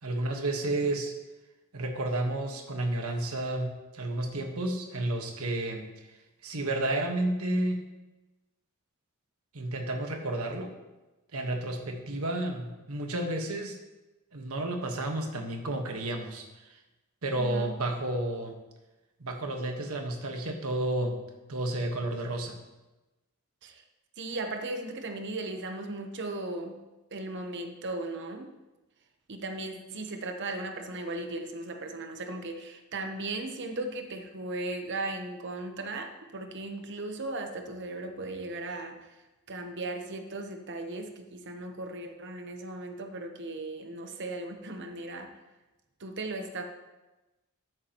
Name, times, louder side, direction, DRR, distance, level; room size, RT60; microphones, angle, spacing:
voice 1, 0.0-1.2 1.7-6.1 6.4-7.8 9.5-10.7 11.3-13.8 14.3-16.8 17.2-18.6 19.2-21.2 21.5-22.6, right 1 dB, 75° right, 4 dB, 1.4 m, -31 dB
voice 2, 17.3-17.7 23.6-23.8 24.2-26.8 27.1-28.5 29.3-39.0 39.5-45.3 46.0-46.6, right 2 dB, 55° right, 5 dB, 0.9 m, -37 dB
13.0 x 9.5 x 3.0 m, 1.1 s
head